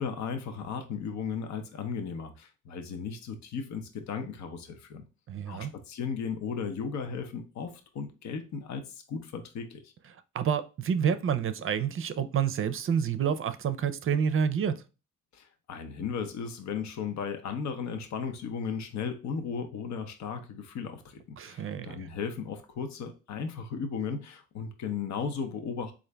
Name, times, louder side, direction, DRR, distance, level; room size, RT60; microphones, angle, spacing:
voice 1, 0.0-5.0 5.5-9.9 15.3-25.9, left 6 dB, 65° left, 0.8 m, -36 dB
voice 2, 5.3-5.7 10.3-14.8 21.4-22.0, right 7 dB, 45° right, 0.5 m, -28 dB
3.8 x 2.5 x 3.3 m
cardioid pair, 90°, 30 cm